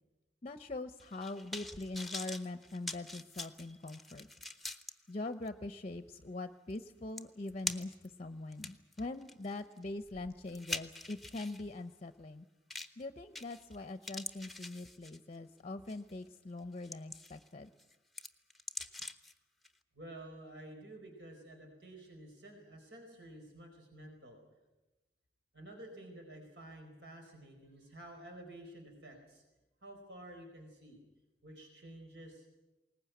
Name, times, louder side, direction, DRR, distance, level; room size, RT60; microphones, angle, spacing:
voice 1, 0.4-4.3 5.1-7.9 8.2-12.5 13.0-17.7, left 2 dB, 35° left, 10 dB, 0.7 m, -43 dB
sound 1, 1.0-4.9 5.5-5.6 6.8-6.9 7.2-8.1 8.5-11.6 12.7-13.0 13.4-13.8 14.0-15.4 15.9-16.1 16.6-17.5 17.8-19.3 19.6-19.7, left 2 dB, ahead, 1.1 m, -44 dB
voice 2, 19.9-24.4 25.5-29.4 29.8-31.0 31.4-32.5, right 1 dB, 70° right, 3 dB, 4.6 m, -51 dB
21.0 x 19.5 x 9.4 m, 1.1 s
head